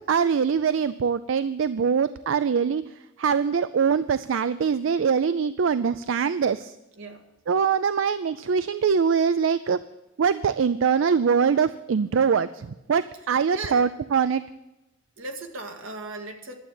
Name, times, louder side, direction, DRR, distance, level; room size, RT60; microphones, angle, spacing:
voice 1, 0.1-2.8 3.2-6.7 7.5-9.8 10.2-14.4, right 6 dB, 75° right, 14 dB, 0.4 m, -23 dB
voice 2, 13.5-13.9 15.2-16.6, right 3 dB, 90° right, 4 dB, 1.7 m, -37 dB
12.0 x 7.9 x 8.8 m, 0.94 s
head